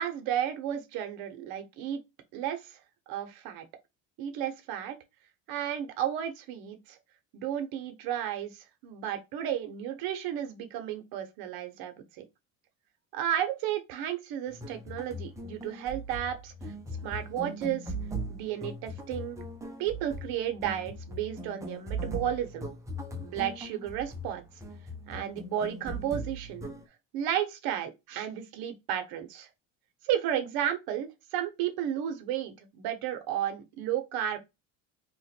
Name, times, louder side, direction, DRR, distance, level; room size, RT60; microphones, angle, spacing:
voice 1, 0.0-2.0 2.3-2.8 3.1-3.6 4.2-5.0 5.5-7.0 7.3-12.2 13.1-16.5 17.0-17.9 18.3-19.4 19.8-22.7 23.1-24.4 25.1-26.7 27.1-29.5 30.0-34.4, right 10 dB, 70° right, 0.9 m, -33 dB
sound 1, 14.5-26.8, right 1 dB, 10° right, 0.7 m, -39 dB
2.9 x 2.5 x 4.1 m
cardioid pair, 115°, 37 cm